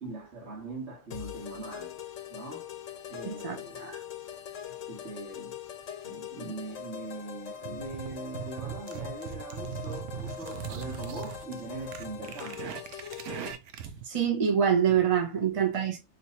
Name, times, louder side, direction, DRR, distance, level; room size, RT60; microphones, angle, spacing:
voice 1, 0.0-1.9 2.3-2.7 3.1-4.1 4.9-5.6 6.0-12.8 14.9-15.1, right 2 dB, 60° right, 1.4 m, -41 dB
sound 1, 1.1-13.5, left 8 dB, 85° left, 1.0 m, -42 dB
voice 2, 3.2-3.6 14.0-16.0, right 8 dB, 30° right, 0.8 m, -25 dB
sound 2, 7.6-14.0, right 8 dB, 80° right, 0.9 m, -40 dB
2.8 x 2.5 x 4.2 m
omnidirectional pair, 1.3 m